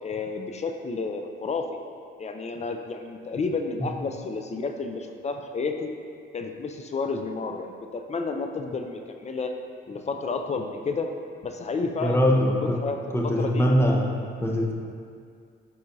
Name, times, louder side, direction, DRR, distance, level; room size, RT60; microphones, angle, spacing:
voice 1, 0.0-1.7 2.2-5.9 6.3-9.5 9.9-11.1 11.4-12.2 12.5-13.0 13.2-13.7, left 4 dB, 35° left, 4 dB, 0.5 m, -31 dB
voice 2, 12.0-12.8 13.1-14.1 14.4-14.7, equal, 10° left, -1 dB, 0.8 m, -22 dB
9.4 x 4.3 x 2.7 m, 2.2 s
cardioid pair, 90°, 20 cm